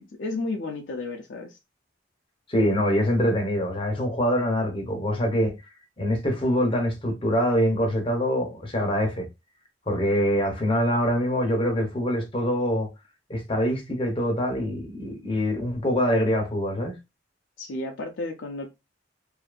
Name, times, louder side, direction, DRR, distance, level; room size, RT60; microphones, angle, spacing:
voice 1, 0.0-1.6 17.6-18.7, left 2 dB, 70° left, 0.4 m, -32 dB
voice 2, 2.5-5.5 6.0-9.3 9.9-12.9 13.3-16.9, equal, 30° left, 0.7 m, -24 dB
2.6 x 2.4 x 2.2 m
head